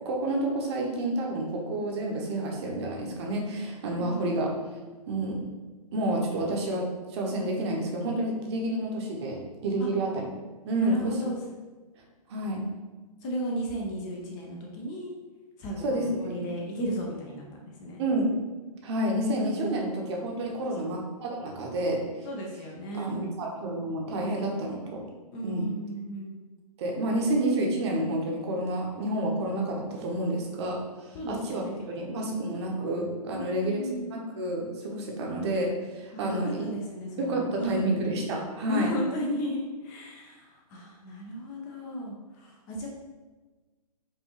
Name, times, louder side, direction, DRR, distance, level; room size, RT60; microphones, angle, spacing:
voice 1, 0.0-4.5 5.1-5.4 5.9-10.2 10.7-11.5 12.3-12.6 15.8-16.5 18.0-18.3 18.8-22.0 22.9-25.0 25.4-25.7 26.8-33.8 34.1-36.6 37.2-38.9, right 1 dB, 45° right, 0 dB, 0.8 m, -29 dB
voice 2, 3.9-4.3 9.8-9.9 10.8-11.3 13.2-15.2 15.6-18.0 19.5-19.9 20.6-20.7 22.2-23.3 25.3-26.4 31.1-32.5 33.3-34.1 36.1-37.9 38.7-42.9, equal, 25° left, -1 dB, 0.5 m, -35 dB
4.6 x 2.5 x 3.0 m, 1.3 s
hypercardioid pair, 140°, 20 cm